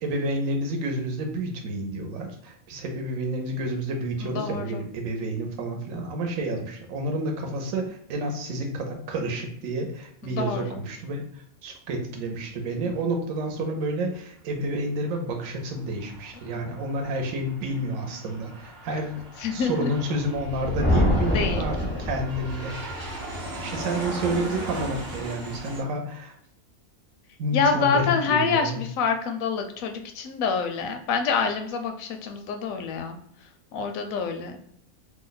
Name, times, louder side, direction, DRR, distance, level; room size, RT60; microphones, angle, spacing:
voice 1, 0.0-19.2 19.5-26.3 27.4-28.8, right 1 dB, 80° right, 3 dB, 1.1 m, -30 dB
voice 2, 4.2-4.8 10.2-10.8 16.5-16.7 19.4-19.9 21.3-21.6 27.5-33.2 33.7-34.6, left 5 dB, 80° left, 5 dB, 1.0 m, -26 dB
Aircraft, 15.6-25.8, right 1 dB, 40° right, 0.7 m, -38 dB
Thunder, 20.3-22.7, left 1 dB, 15° left, 0.3 m, -25 dB
2.9 x 2.1 x 3.9 m, 0.70 s
omnidirectional pair, 1.4 m